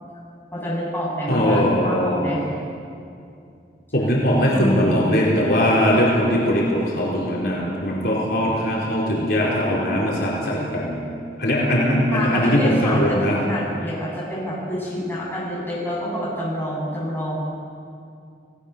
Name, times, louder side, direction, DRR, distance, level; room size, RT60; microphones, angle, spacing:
voice 1, 0.5-2.4 4.5-5.1 12.1-17.4, equal, 10° left, -5 dB, 7.0 m, -27 dB
voice 2, 1.3-2.4 3.9-11.0 11.4-13.4, equal, 60° left, -5 dB, 4.5 m, -20 dB
29.5 x 17.5 x 6.9 m, 2.4 s
head